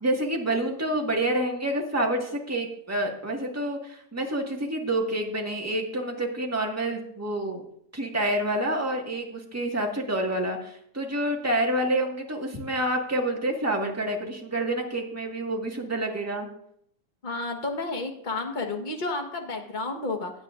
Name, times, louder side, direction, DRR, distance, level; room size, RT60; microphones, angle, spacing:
voice 1, 0.0-7.6 7.9-16.5, right 1 dB, 10° right, 0 dB, 1.5 m, -28 dB
voice 2, 17.2-20.3, left 3 dB, 30° left, 3 dB, 1.3 m, -31 dB
17.0 x 9.8 x 2.5 m, 0.69 s
omnidirectional pair, 1.8 m